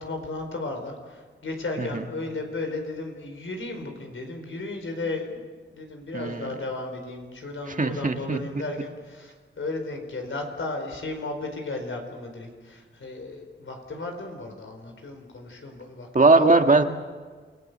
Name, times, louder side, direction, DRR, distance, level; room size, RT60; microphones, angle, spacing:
voice 1, 0.0-5.4 5.7-16.6, left 2 dB, 80° left, 4 dB, 4.6 m, -34 dB
voice 2, 6.1-6.5 7.8-8.4 16.1-16.8, right 3 dB, 40° right, 5 dB, 1.7 m, -19 dB
28.5 x 20.0 x 6.8 m, 1.5 s
wide cardioid pair, 70°, 20 cm